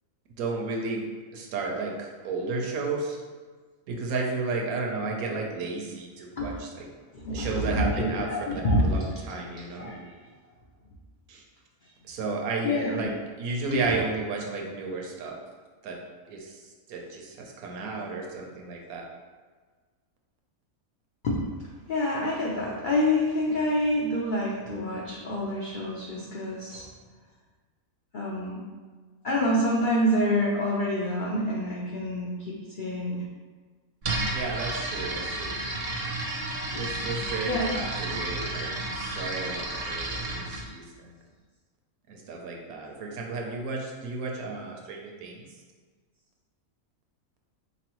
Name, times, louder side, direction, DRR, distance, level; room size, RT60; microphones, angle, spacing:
voice 1, 0.4-1.1 1.3-3.2 3.9-6.9 7.3-8.3 8.8-9.9 11.3-11.4 12.1-13.1 13.4-15.4 15.8-16.0 16.3-16.6 16.9-19.1 34.3-35.6 36.7-41.1 42.1-45.5, right 3 dB, 80° right, 0 dB, 1.1 m, -33 dB
voice 2, 7.1-9.5 9.7-10.1 12.6-13.1 13.7-14.0 21.2-21.4 21.9-26.9 28.1-28.6 29.2-33.2 36.7-36.9 37.4-37.8 38.1-38.2, left 1 dB, 70° left, -5 dB, 0.4 m, -27 dB
sound 1, 34.0-40.7, right 2 dB, 55° right, 0.7 m, -32 dB
4.1 x 3.0 x 3.0 m, 1.5 s
omnidirectional pair, 1.5 m